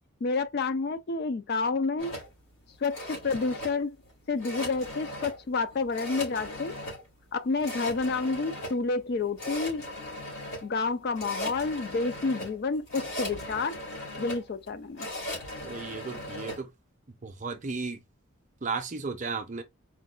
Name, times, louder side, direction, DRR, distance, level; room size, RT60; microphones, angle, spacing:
voice 1, 0.2-2.1 2.8-4.0 4.3-6.7 7.3-9.9 10.6-13.8 14.2-15.1, left 4 dB, 45° left, 0.3 m, -29 dB
sound 1, 2.0-16.6, left 1 dB, 80° left, 2.5 m, -38 dB
voice 2, 15.6-16.7 17.2-18.0 18.6-19.6, right 4 dB, 35° right, 0.6 m, -34 dB
4.4 x 2.3 x 2.3 m
head